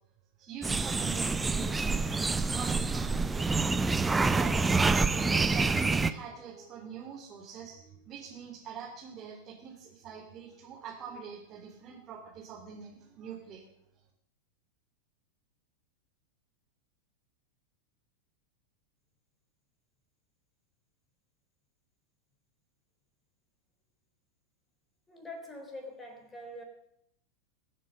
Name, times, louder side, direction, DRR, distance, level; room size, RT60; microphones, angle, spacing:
voice 1, 0.4-2.1 2.5-3.6 4.2-13.6, right 7 dB, 30° right, -3 dB, 3.3 m, -44 dB
sound 1, 0.6-6.1, right 3 dB, 10° right, 0.8 m, -27 dB
voice 2, 25.1-26.6, left 1 dB, 15° left, 5 dB, 3.8 m, -44 dB
22.5 x 7.5 x 6.5 m, 0.75 s
figure-of-eight pair, 90°, 0 cm